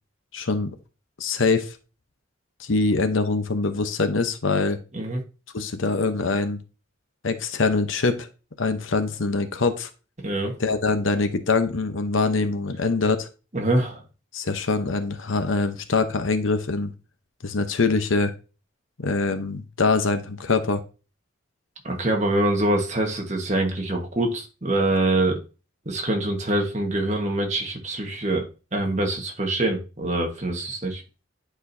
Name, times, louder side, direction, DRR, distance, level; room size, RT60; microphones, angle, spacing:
voice 1, 0.3-0.7 1.2-1.8 2.6-4.8 5.5-6.6 7.2-8.3 8.6-9.9 10.6-13.3 14.3-16.9 17.4-18.3 19.0-20.8, left 3 dB, 75° left, 8 dB, 0.9 m, -23 dB
voice 2, 10.2-10.6 13.5-14.0 21.8-25.4 25.8-31.0, right 1 dB, 35° right, 2 dB, 1.4 m, -24 dB
10.0 x 4.5 x 2.7 m, 0.32 s
head